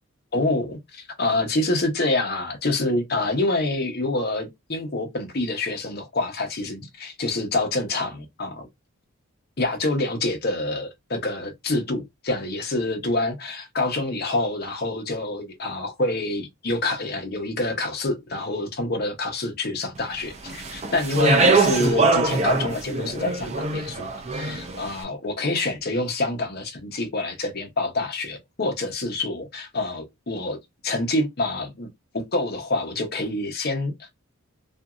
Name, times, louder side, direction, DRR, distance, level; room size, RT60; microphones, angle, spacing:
voice 1, 0.3-8.7 9.6-24.1 24.3-30.6 30.8-31.9 32.1-33.9, left 2 dB, 45° left, 0.8 m, -27 dB
Speech, 20.5-24.8, right 3 dB, 30° right, 0.5 m, -22 dB
2.8 x 2.6 x 2.4 m
head